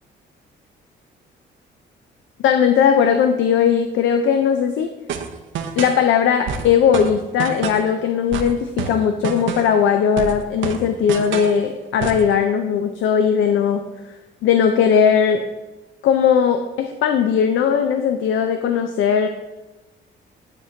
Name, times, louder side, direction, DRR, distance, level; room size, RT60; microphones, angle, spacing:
voice 1, 2.4-4.9 5.8-13.8 14.4-15.4 16.0-19.3, left 7 dB, 75° left, 7 dB, 0.5 m, -18 dB
sound 1, 5.1-6.0 6.5-7.9 8.3-9.8 10.2-11.6 12.0-12.3, right 7 dB, 75° right, 0.6 m, -28 dB
9.9 x 3.5 x 2.8 m, 1.1 s
cardioid pair, 90°, 20 cm